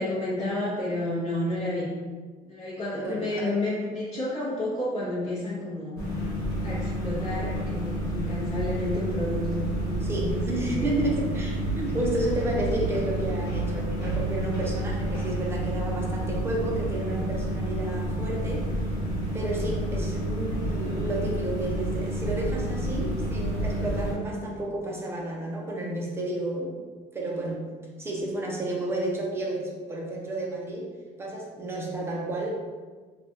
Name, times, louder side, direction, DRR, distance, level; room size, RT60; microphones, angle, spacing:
voice 1, 0.0-1.9 2.4-6.0 6.6-11.0, left 1 dB, 40° left, -10 dB, 0.8 m, -31 dB
voice 2, 3.0-3.6 10.0-18.7 19.3-26.7 27.1-27.7 28.0-30.9 31.2-32.5, right 1 dB, 15° right, -2 dB, 0.6 m, -31 dB
sound 1, 6.0-24.1, right 1 dB, 75° left, 1.4 m, -29 dB
3.1 x 2.3 x 2.7 m, 1.4 s
cardioid pair, 145°, 16 cm